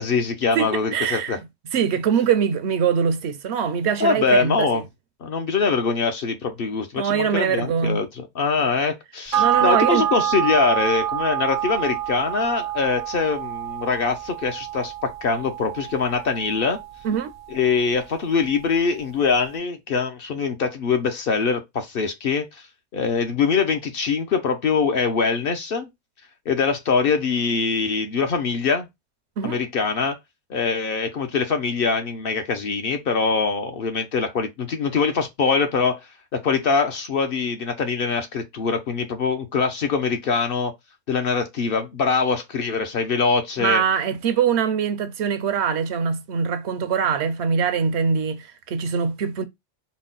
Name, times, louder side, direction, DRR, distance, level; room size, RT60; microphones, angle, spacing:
voice 1, 0.0-1.4 4.0-4.8 5.2-16.8 17.5-22.6 22.9-25.9 26.5-28.9 29.4-30.2 30.5-36.1 36.3-40.7 41.1-43.8, left 5 dB, 55° left, 0.8 m, -23 dB
voice 2, 0.5-4.8 7.0-8.1 8.6-8.7 9.4-10.1 17.0-17.3 29.4-29.6 43.6-49.4, right 7 dB, 70° right, 0.8 m, -23 dB
sound 1, 9.3-18.1 18.4-18.5, right 11 dB, 45° right, 0.4 m, -27 dB
4.0 x 2.1 x 3.7 m
omnidirectional pair, 1.2 m